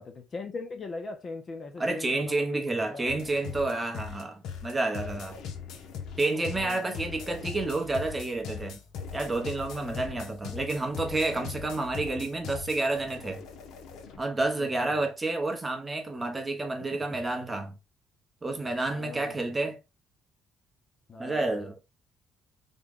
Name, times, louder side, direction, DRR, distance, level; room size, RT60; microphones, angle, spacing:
voice 1, 0.0-2.6 2.9-3.1 6.2-6.9 9.8-10.4 14.6-15.0 16.9-17.2 18.9-19.4 21.1-21.5, left 3 dB, 30° left, 0.5 m, -41 dB
voice 2, 1.8-5.4 6.2-8.8 9.1-13.4 14.2-17.8 18.4-19.8 21.2-21.8, right 2 dB, 15° right, 0.7 m, -30 dB
sound 1, 3.1-14.2, left 6 dB, 70° left, 0.7 m, -40 dB
3.5 x 2.2 x 3.5 m
cardioid pair, 160°, 0 cm